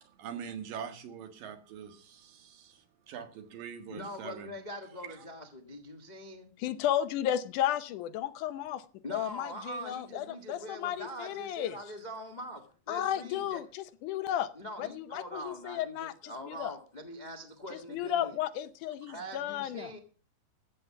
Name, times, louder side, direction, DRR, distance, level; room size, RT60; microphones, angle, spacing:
voice 1, 0.0-4.5 5.1-5.2, right 8 dB, 90° right, 3.4 m, -44 dB
voice 2, 3.9-6.5 9.0-13.6 14.5-18.3 19.1-20.0, equal, 40° left, 0.6 m, -43 dB
voice 3, 6.6-8.8 9.1-11.8 12.9-14.5 14.8-16.8 17.7-19.9, left 11 dB, 75° left, 2.1 m, -33 dB
14.0 x 8.6 x 5.8 m
omnidirectional pair, 3.9 m